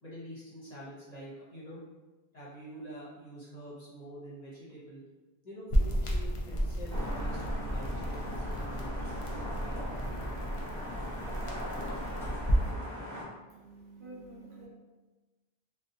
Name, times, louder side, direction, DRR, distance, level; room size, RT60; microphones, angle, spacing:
voice 1, 0.0-1.8 2.3-5.0 5.4-9.2 9.6-9.7, equal, 45° left, -8 dB, 0.7 m, -47 dB
sound 1, 5.7-12.7, equal, 60° left, 0.3 m, -32 dB
sound 2, 6.9-13.2, equal, 5° left, 0.8 m, -40 dB
voice 2, 13.5-14.7, right 2 dB, 60° right, -6 dB, 0.9 m, -49 dB
2.7 x 2.1 x 2.5 m, 1.2 s
omnidirectional pair, 1.1 m